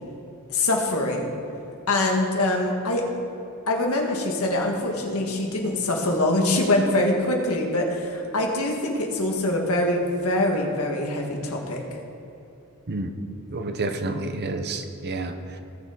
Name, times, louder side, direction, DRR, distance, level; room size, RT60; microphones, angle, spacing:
voice 1, 0.5-1.3 1.9-3.1 3.7-11.8, left 1 dB, 85° left, 0 dB, 1.8 m, -24 dB
voice 2, 13.5-15.6, right 2 dB, 50° right, 7 dB, 0.8 m, -29 dB
18.0 x 7.0 x 3.9 m, 2.8 s
head